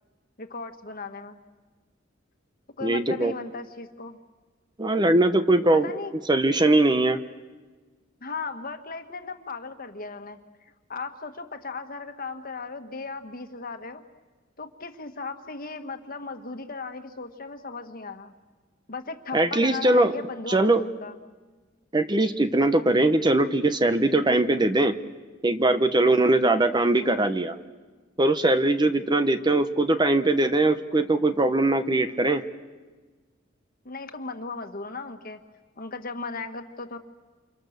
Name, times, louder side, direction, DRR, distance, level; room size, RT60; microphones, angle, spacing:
voice 1, 0.4-1.4 2.8-4.2 5.7-6.1 8.2-14.0 14.6-18.3 18.9-21.2 33.9-35.4 35.8-37.0, left 4 dB, 50° left, 7 dB, 1.6 m, -37 dB
voice 2, 2.8-3.3 4.8-5.9 6.3-7.2 19.3-20.2 20.5-20.8 21.9-25.0 25.4-27.6 28.2-32.4, right 2 dB, 20° right, 10 dB, 0.9 m, -21 dB
29.0 x 27.5 x 6.7 m, 1.3 s
head